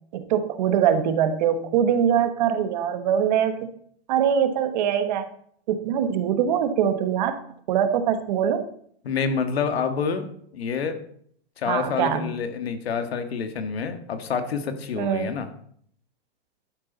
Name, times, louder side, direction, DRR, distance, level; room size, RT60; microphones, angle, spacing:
voice 1, 0.1-3.6 4.1-5.3 5.7-7.3 7.7-8.6 11.7-12.3 15.0-15.3, right 8 dB, 45° right, 9 dB, 1.2 m, -23 dB
voice 2, 9.0-10.3 10.5-11.0 11.6-15.5, left 6 dB, 80° left, 7 dB, 1.8 m, -27 dB
11.5 x 9.8 x 4.0 m, 0.63 s
hypercardioid pair, 160°, 30 cm